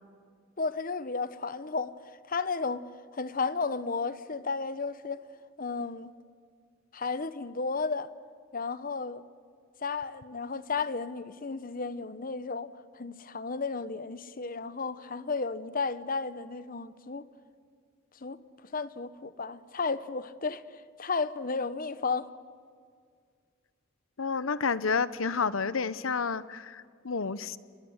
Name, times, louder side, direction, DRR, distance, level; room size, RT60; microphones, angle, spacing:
voice 1, 0.6-1.9 2.3-2.9 3.1-5.2 5.6-6.1 6.9-8.1 8.5-9.2 9.8-12.7 12.9-17.2 18.2-18.4 18.7-22.3, left 4 dB, 45° left, 1.0 m, -33 dB
voice 2, 24.2-27.6, left 5 dB, 85° left, 0.9 m, -30 dB
29.5 x 22.5 x 8.1 m
head